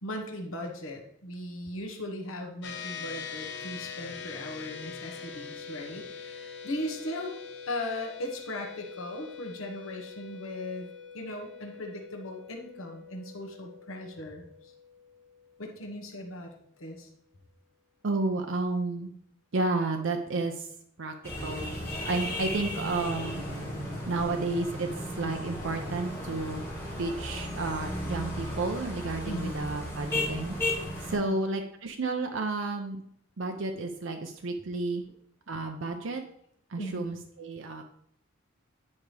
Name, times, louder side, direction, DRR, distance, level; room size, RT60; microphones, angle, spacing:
voice 1, 0.0-7.3 7.7-10.9 11.1-14.7 15.6-16.5 16.8-17.1 29.2-29.5 31.1-31.4 36.8-37.0, left 1 dB, 80° left, 2 dB, 1.2 m, -38 dB
sound 1, 2.6-16.2, left 6 dB, 55° left, 1.0 m, -44 dB
voice 2, 18.0-19.1 19.5-20.7 21.0-21.1 21.4-21.7 22.1-23.4 24.1-24.9 25.2-26.6 27.0-33.0 33.4-35.0 35.5-36.2 36.7-37.8, right 3 dB, 65° right, 4 dB, 0.6 m, -31 dB
sound 2, 21.2-31.2, left 1 dB, 10° left, 1.7 m, -35 dB
9.7 x 4.6 x 3.3 m, 0.68 s
head